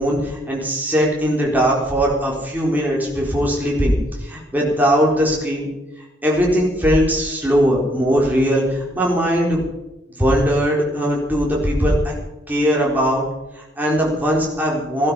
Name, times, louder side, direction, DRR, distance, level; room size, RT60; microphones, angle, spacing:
voice 1, 0.0-4.0 4.2-5.7 6.2-9.6 10.2-12.1 12.5-13.2 13.6-15.1, equal, 10° right, -3 dB, 4.0 m, -19 dB
16.5 x 12.0 x 5.6 m, 1.0 s
head